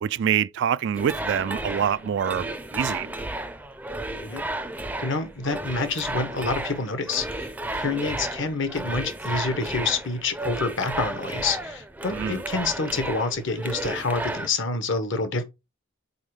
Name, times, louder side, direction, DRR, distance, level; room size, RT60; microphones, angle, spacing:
voice 1, 0.0-3.1 12.1-12.4, right 8 dB, 55° right, 0.3 m, -26 dB
sound 1, 0.9-14.5, right 2 dB, 5° right, 0.5 m, -33 dB
voice 2, 4.1-4.4 5.0-15.4, left 3 dB, 60° left, 1.2 m, -28 dB
5.5 x 4.4 x 4.8 m
head